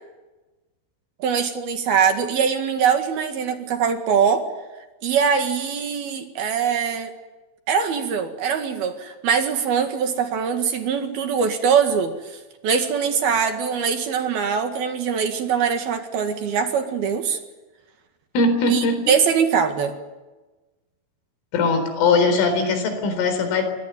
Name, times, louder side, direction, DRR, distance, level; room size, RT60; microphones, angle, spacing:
voice 1, 1.2-4.4 5.0-7.1 7.7-12.4 12.6-17.4 18.7-19.9, right 7 dB, 60° right, 6 dB, 3.4 m, -22 dB
voice 2, 18.3-19.1 21.5-23.6, left 3 dB, 85° left, 8 dB, 6.7 m, -20 dB
27.0 x 22.5 x 9.2 m, 1.2 s
omnidirectional pair, 5.6 m